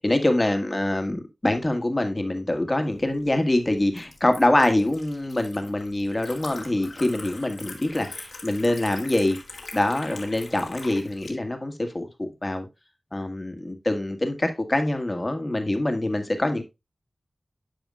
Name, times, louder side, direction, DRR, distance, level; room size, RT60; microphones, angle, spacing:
voice 1, 0.0-9.4 9.7-12.7 13.1-16.6, left 1 dB, 30° left, 1.6 m, -25 dB
Liquid, 2.9-11.3, left 3 dB, 80° left, 2.1 m, -43 dB
11.5 x 4.9 x 2.4 m
wide cardioid pair, 50°, 0 cm